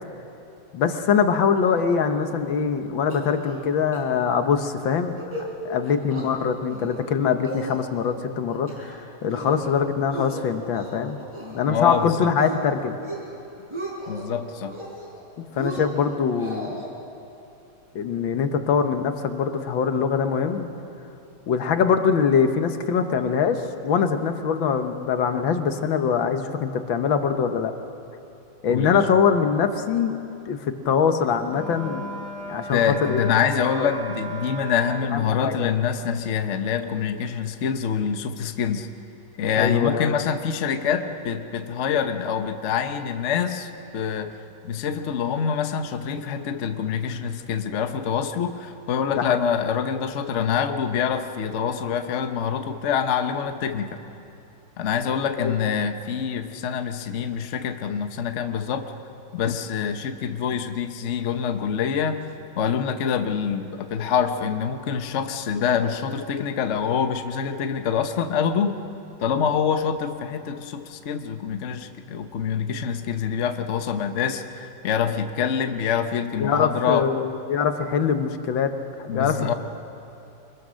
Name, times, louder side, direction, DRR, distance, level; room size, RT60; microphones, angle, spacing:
voice 1, 0.7-5.2 5.6-11.2 11.5-13.0 15.4-16.8 18.0-20.7 21.5-27.7 28.6-30.2 30.5-32.1 32.5-33.3 33.7-33.9 35.1-35.7 39.6-40.2 49.2-49.4 55.4-55.5 76.4-78.7 79.0-79.5, left 6 dB, 75° left, 7 dB, 1.9 m, -23 dB
sound 1, 3.1-3.7 3.9-4.0 4.4-4.6 5.0-5.5 5.8-6.3 6.7-7.1 7.4-8.1 8.5-9.0 9.3-9.7 10.1-11.6 11.9-12.6 12.9-13.3 13.6-14.2 14.6-15.2 15.6-16.9, right 1 dB, 15° right, 4.0 m, -36 dB
voice 2, 11.7-12.3 14.1-14.8 28.7-29.0 32.7-38.9 39.4-44.3 44.6-54.0 54.8-58.9 59.3-62.2 62.6-68.8 69.2-77.1 79.1-79.5, left 7 dB, 50° left, 7 dB, 1.0 m, -25 dB
Wind instrument woodwind instrument, 31.4-35.3, right 1 dB, 55° right, 3.7 m, -36 dB
24.5 x 21.5 x 6.4 m, 2.8 s
omnidirectional pair, 2.1 m